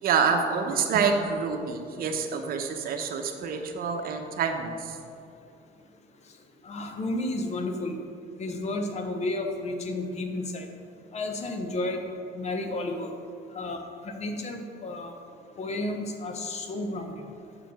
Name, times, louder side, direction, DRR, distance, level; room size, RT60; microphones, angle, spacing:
voice 1, 0.0-5.0, right 5 dB, 60° right, 5 dB, 1.0 m, -27 dB
voice 2, 6.6-7.9 8.4-10.7 11.1-12.0 12.3-13.1 13.5-13.8 14.0-15.1 15.6-17.1, left 2 dB, 40° left, 5 dB, 1.0 m, -32 dB
7.6 x 5.1 x 6.2 m, 2.4 s
cardioid pair, 110°, 17 cm